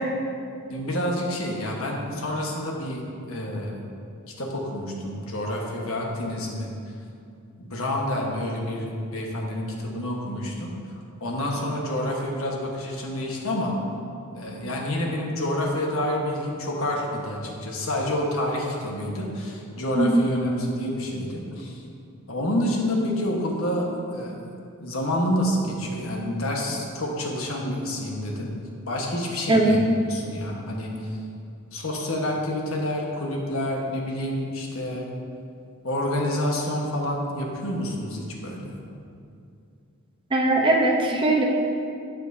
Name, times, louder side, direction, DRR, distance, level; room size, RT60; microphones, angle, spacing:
voice 1, 0.7-3.0 3.3-3.8 4.3-6.7 7.6-13.8 14.3-21.8 22.3-24.4 24.8-29.8 30.1-31.2 31.7-35.1 35.8-38.8, left 1 dB, 80° left, -1 dB, 1.4 m, -28 dB
voice 2, 40.3-41.4, right 2 dB, 25° right, 0 dB, 0.8 m, -20 dB
11.5 x 7.4 x 2.8 m, 2.5 s
head